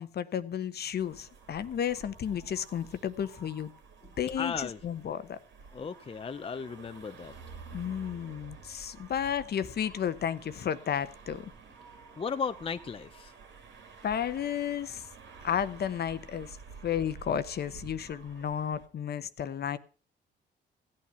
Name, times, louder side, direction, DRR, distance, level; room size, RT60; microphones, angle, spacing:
voice 1, 0.0-3.7 4.2-5.4 7.7-11.5 14.0-15.1 15.4-16.6 16.8-19.8, left 9 dB, 55° left, 0.9 m, -32 dB
sound 1, 1.0-18.9, right 5 dB, 70° right, 2.6 m, -50 dB
voice 2, 4.0-4.8 5.7-7.4 12.2-13.3, left 6 dB, 30° left, 0.6 m, -36 dB
15.5 x 8.6 x 5.6 m
cardioid pair, 90°, 20 cm